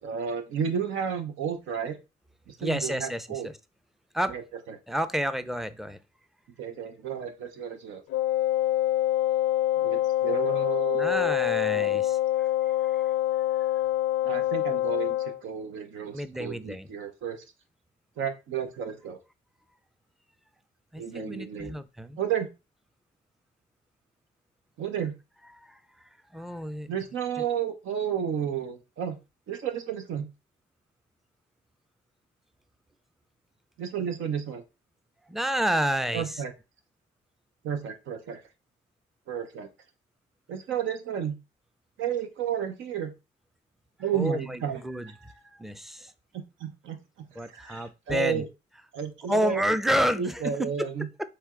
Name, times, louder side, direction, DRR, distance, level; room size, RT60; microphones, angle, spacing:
voice 1, 0.0-2.0 2.5-3.5 4.3-4.4 4.7-4.8 6.6-8.0 9.8-11.4 11.7-12.0 14.2-17.4 18.2-19.2 21.0-21.8 22.2-22.5 24.8-25.1 26.9-29.2 29.5-30.3 33.8-34.6 36.1-36.5 37.6-38.4 39.3-39.7 40.5-41.4 42.0-43.1 44.0-44.8 46.3-48.5 48.9-49.6 50.2-51.1, right 8 dB, 80° right, 0.9 m, -32 dB
voice 2, 2.6-3.5 4.1-4.3 4.9-6.0 10.9-13.1 16.1-16.9 20.9-22.2 25.5-25.8 26.3-26.9 35.3-36.4 44.1-46.1 47.4-48.4 49.3-50.9, equal, ahead, 0.5 m, -30 dB
Wind instrument woodwind instrument, 8.1-15.4, left 14 dB, 90° left, 0.5 m, -25 dB
4.3 x 3.3 x 3.7 m
cardioid pair, 90°, 20 cm